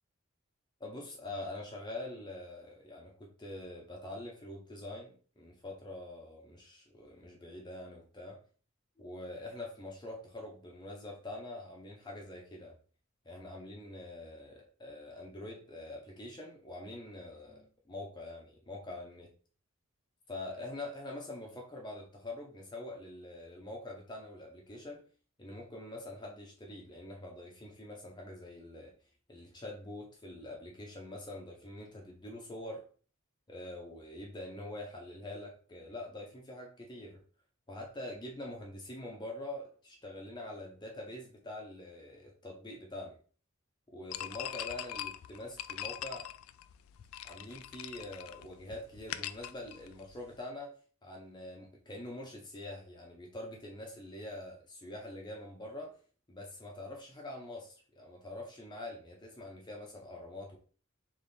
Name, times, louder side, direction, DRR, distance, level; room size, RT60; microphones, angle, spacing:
voice 1, 0.8-8.4 9.0-12.8 13.2-19.3 20.3-25.0 25.4-28.9 29.3-32.8 33.5-37.2 37.7-43.2 43.9-46.3 47.2-50.7 51.0-55.9 56.3-60.6, left 1 dB, 20° left, 0 dB, 0.8 m, -45 dB
sound 1, 44.1-50.4, left 12 dB, 80° left, 0.3 m, -42 dB
3.4 x 3.2 x 4.1 m, 0.41 s
head